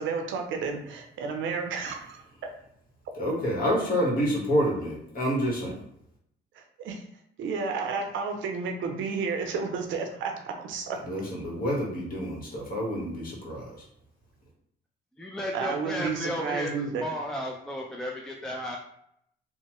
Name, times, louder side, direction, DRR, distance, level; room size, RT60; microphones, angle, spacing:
voice 1, 0.0-2.2 6.5-7.1 7.4-11.0 15.5-17.1, right 5 dB, 75° right, 3 dB, 0.5 m, -31 dB
voice 2, 3.2-5.8 11.0-13.9, equal, 45° left, -3 dB, 1.2 m, -28 dB
voice 3, 15.2-18.8, equal, 5° left, -1 dB, 0.3 m, -34 dB
3.0 x 2.0 x 2.9 m, 0.72 s
cardioid pair, 90°, 20 cm